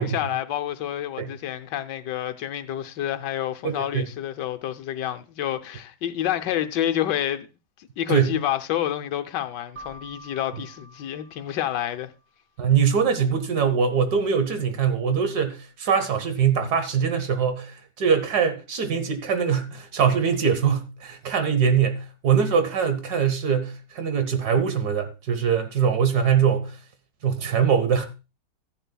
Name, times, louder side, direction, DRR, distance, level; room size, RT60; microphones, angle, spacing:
voice 1, 0.0-7.5 8.0-12.1, left 11 dB, 75° left, 1.3 m, -28 dB
voice 2, 3.6-4.1 8.1-8.4 12.6-26.8 27.2-28.1, right 7 dB, 65° right, 1.5 m, -22 dB
Keyboard (musical), 9.8-12.3, right 1 dB, 5° right, 6.3 m, -47 dB
14.0 x 10.0 x 2.3 m
omnidirectional pair, 1.9 m